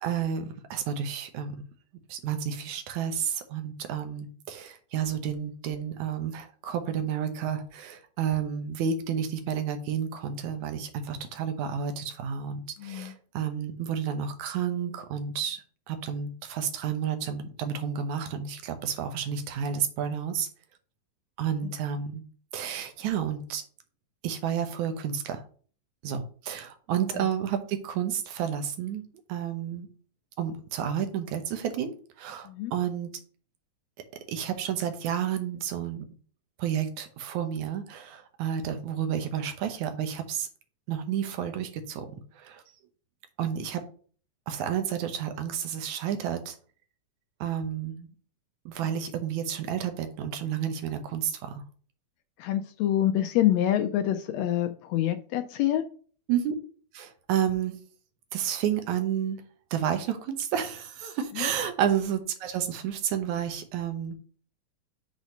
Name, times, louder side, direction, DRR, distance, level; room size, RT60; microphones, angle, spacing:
voice 1, 0.0-1.6 2.1-20.5 21.4-22.2 22.5-23.6 24.2-25.4 26.0-29.0 29.3-29.9 30.4-33.1 34.3-36.1 36.6-40.5 40.9-42.6 43.4-43.8 44.5-46.6 47.4-48.1 48.7-51.6 56.3-56.6 56.9-57.8 58.3-59.4 59.7-64.2, right 8 dB, 80° right, 7 dB, 2.3 m, -31 dB
voice 2, 12.8-13.1 21.6-21.7 27.1-27.3 32.4-32.7 52.4-55.8 61.3-61.5, left 12 dB, 80° left, 9 dB, 1.6 m, -26 dB
6.4 x 4.1 x 5.2 m, 0.42 s
omnidirectional pair, 3.4 m